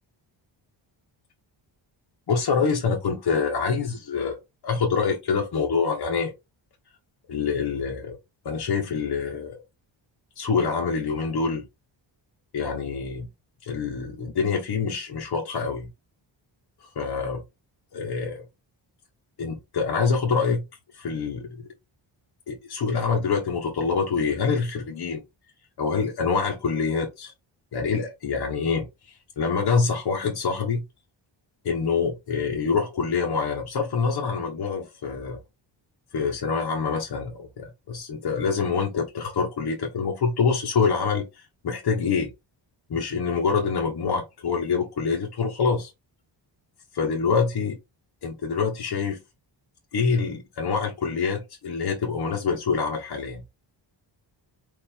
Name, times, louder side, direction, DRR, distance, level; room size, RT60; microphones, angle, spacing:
voice 1, 2.3-4.4 4.6-6.3 7.3-8.2 8.4-9.6 10.4-11.6 12.5-13.3 13.7-15.9 16.8-17.4 17.9-18.4 19.4-20.6 20.9-21.6 22.5-25.2 25.8-27.3 27.7-30.8 31.6-35.4 36.1-42.3 42.9-45.9 46.9-47.8 48.2-49.2 49.9-53.4, left 5 dB, 55° left, 1.2 m, -26 dB
4.5 x 2.8 x 3.5 m
wide cardioid pair, 130°, 46 cm